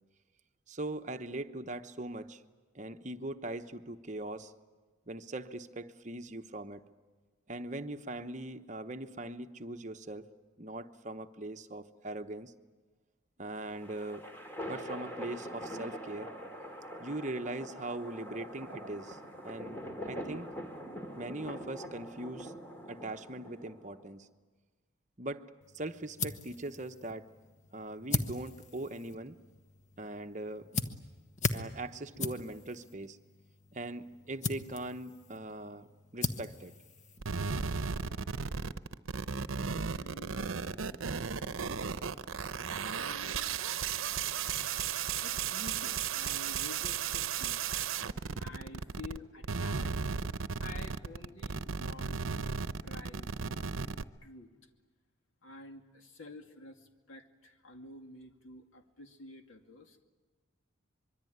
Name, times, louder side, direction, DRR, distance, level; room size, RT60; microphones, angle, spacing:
voice 1, 0.7-2.4 2.7-4.5 5.1-6.8 7.5-10.3 10.6-12.5 13.4-14.2 14.6-16.3 17.0-19.2 19.4-20.5 21.2-22.5 22.9-24.3 25.2-25.4 25.7-27.3 27.7-29.4 30.0-30.7 31.5-33.2 33.7-36.7, right 2 dB, 35° right, 8 dB, 1.0 m, -41 dB
sound 1, 13.5-24.0, equal, 10° left, 2.6 m, -44 dB
sound 2, 25.6-37.7, left 3 dB, 35° left, 1.2 m, -40 dB
sound 3, 37.2-49.2 49.4-54.0, right 6 dB, 85° right, 0.8 m, -35 dB
voice 2, 39.9-41.2 42.8-43.7 44.2-44.7 45.2-48.1 48.4-49.9 50.6-53.7 54.2-54.7 55.4-60.0, left 2 dB, 75° left, 5 dB, 2.5 m, -50 dB
25.0 x 23.5 x 9.4 m, 1.4 s
head